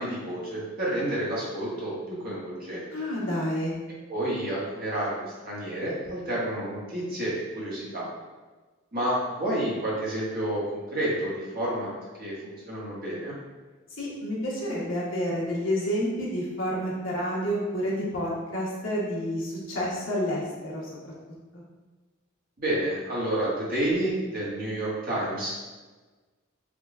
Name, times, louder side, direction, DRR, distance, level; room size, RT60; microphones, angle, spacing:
voice 1, 0.0-2.9 4.1-8.1 8.9-11.9 12.2-13.3 22.6-25.5, right 1 dB, 45° right, -6 dB, 1.1 m, -30 dB
voice 2, 2.9-3.8 13.9-21.1 21.5-21.6, equal, 65° left, -5 dB, 1.1 m, -29 dB
3.7 x 2.2 x 3.5 m, 1.3 s
head